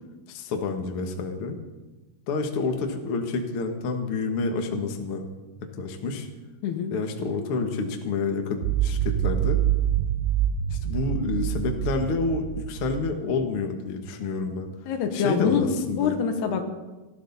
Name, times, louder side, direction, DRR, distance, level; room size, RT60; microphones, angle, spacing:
voice 1, 0.3-1.5 2.3-5.2 5.6-6.3 6.9-9.6 10.7-14.7 15.1-16.2, left 4 dB, 65° left, 4 dB, 1.4 m, -28 dB
voice 2, 6.6-6.9 14.9-16.6, left 6 dB, 80° left, 5 dB, 3.2 m, -25 dB
sound 1, 8.6-13.5, right 11 dB, 85° right, 2.5 m, -26 dB
19.0 x 13.0 x 4.0 m, 1.1 s
omnidirectional pair, 4.6 m